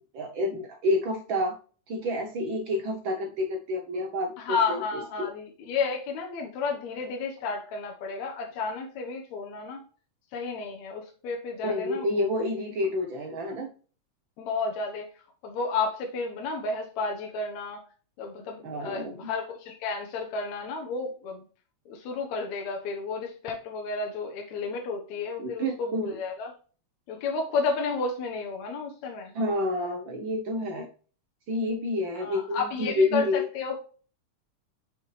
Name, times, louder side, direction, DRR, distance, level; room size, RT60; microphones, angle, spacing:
voice 1, 0.1-1.6 1.9-4.8 5.2-5.3 11.6-13.7 18.6-19.3 25.4-26.2 29.3-30.9 31.5-33.5, left 1 dB, 75° right, 3 dB, 1.1 m, -29 dB
voice 2, 4.4-9.9 10.3-12.1 14.4-15.1 15.4-17.8 18.2-21.5 21.9-26.5 27.1-29.3 32.2-33.8, left 4 dB, 75° left, 1 dB, 2.3 m, -32 dB
6.1 x 5.4 x 3.2 m, 0.39 s
omnidirectional pair, 3.3 m